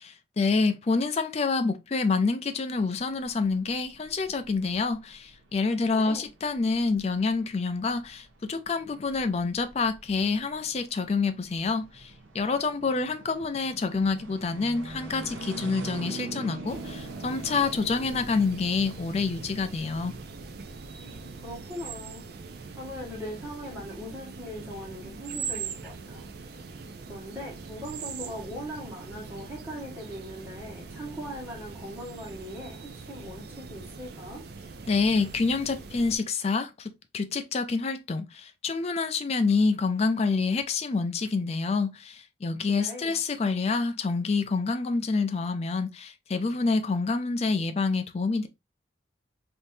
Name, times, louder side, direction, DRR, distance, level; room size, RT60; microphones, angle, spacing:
voice 1, 0.4-20.1 34.9-48.5, left 4 dB, 35° left, 0.4 m, -27 dB
sound 1, 2.8-21.7, right 2 dB, 80° right, 0.8 m, -44 dB
voice 2, 5.9-6.3 21.0-22.3 22.8-26.2 27.1-34.4 42.7-43.2, equal, 10° right, 1.4 m, -40 dB
sound 2, 16.7-36.2, right 5 dB, 55° right, 0.5 m, -42 dB
3.5 x 2.8 x 2.6 m
head